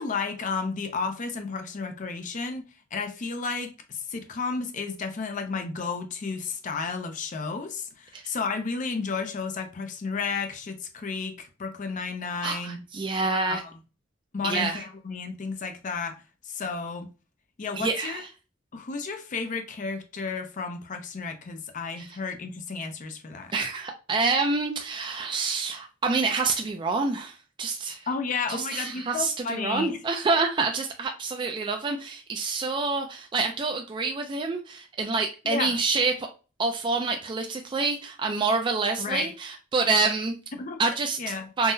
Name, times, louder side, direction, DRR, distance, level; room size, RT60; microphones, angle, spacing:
voice 1, 0.0-2.6 2.9-12.8 13.5-13.6 14.3-16.2 16.4-17.1 17.6-18.2 18.7-23.5 28.1-30.0 35.5-35.8 39.0-39.3 40.5-40.8 41.2-41.5, left 4 dB, 45° left, 0.5 m, -32 dB
voice 2, 12.4-13.6 14.4-14.8 17.8-18.3 22.0-22.2 23.5-28.1 28.5-36.3 36.6-40.3 40.8-41.7, right 4 dB, 25° right, 0.3 m, -27 dB
3.6 x 2.0 x 2.6 m
head